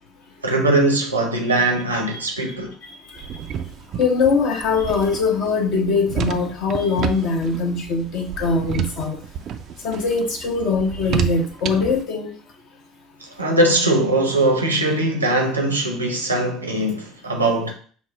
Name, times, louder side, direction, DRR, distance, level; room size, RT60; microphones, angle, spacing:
voice 1, 0.4-2.7 13.2-17.7, right 2 dB, 85° right, 0.8 m, -20 dB
sound 1, 3.2-12.0, right 8 dB, 45° right, 0.4 m, -30 dB
voice 2, 4.0-9.2 9.8-12.3, left 4 dB, 50° left, 0.9 m, -21 dB
5.7 x 2.0 x 4.4 m
figure-of-eight pair, 60°, 0 cm